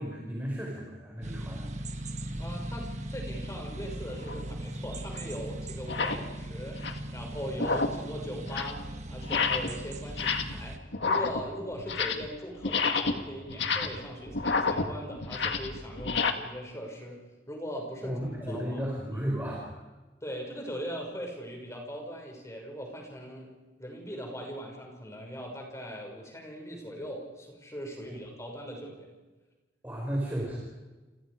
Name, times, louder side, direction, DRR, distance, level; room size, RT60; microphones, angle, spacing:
voice 1, 0.0-1.8 18.0-19.8 28.1-28.2 29.8-30.6, equal, 10° right, -3 dB, 5.5 m, -34 dB
sound 1, 1.2-10.8, right 1 dB, 40° right, 1.6 m, -38 dB
voice 2, 2.4-6.8 7.1-18.8 20.2-23.5 23.8-29.1, equal, 15° left, 1 dB, 6.1 m, -40 dB
sound 2, 4.2-4.4 5.1-5.2 5.8-6.3 6.6-7.1 7.5-8.1 8.4-8.8 9.2-9.8 10.1-10.6 10.9-12.3 12.6-16.3, left 4 dB, 80° left, 2.0 m, -30 dB
30.0 x 26.0 x 5.1 m, 1.2 s
head